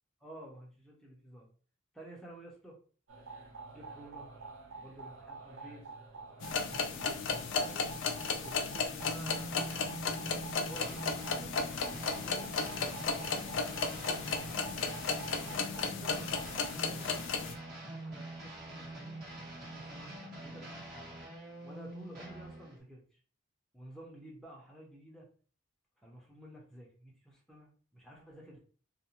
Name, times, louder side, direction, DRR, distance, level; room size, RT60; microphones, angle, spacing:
voice 1, 0.2-1.5 1.9-2.8 3.7-4.3 4.8-5.8 6.1-7.9 8.3-9.9 10.5-11.8 12.1-14.6 15.4-16.3 16.7-17.5 17.7-21.1 21.6-23.2 23.7-25.3 26.0-28.6, right 1 dB, ahead, -3 dB, 0.6 m, -52 dB
sound 1, 3.1-16.7, right 3 dB, 85° right, 0.7 m, -48 dB
sound 2, 6.4-17.5, left 5 dB, 75° left, 0.4 m, -35 dB
sound 3, 9.0-22.8, right 1 dB, 45° right, 1.2 m, -45 dB
2.6 x 2.2 x 2.8 m, 0.41 s
head